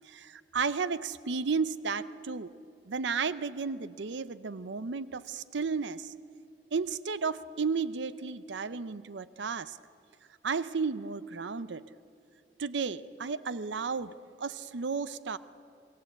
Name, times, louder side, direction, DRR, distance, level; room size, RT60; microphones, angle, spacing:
voice 1, 0.0-2.5 2.9-6.1 6.7-9.8 10.4-11.8 12.6-15.4, right 5 dB, 85° right, 15 dB, 0.6 m, -33 dB
28.0 x 19.0 x 8.0 m, 2.5 s
head